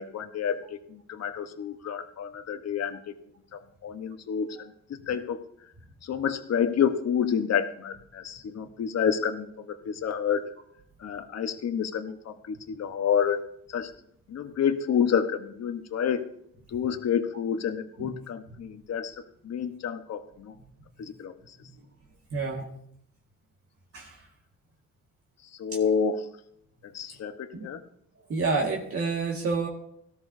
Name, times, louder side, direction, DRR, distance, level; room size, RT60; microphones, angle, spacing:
voice 1, 0.0-3.1 3.5-5.4 6.0-10.5 11.0-13.4 13.7-13.9 14.3-16.2 16.7-19.1 19.4-20.5 21.0-21.6 25.6-26.2 26.8-27.8, left 7 dB, 55° left, 8 dB, 1.2 m, -29 dB
voice 2, 22.3-22.7 23.9-24.3 27.2-27.7 28.3-29.7, right 4 dB, 50° right, -1 dB, 1.9 m, -30 dB
17.5 x 13.0 x 2.7 m, 0.73 s
cardioid pair, 90°, 30 cm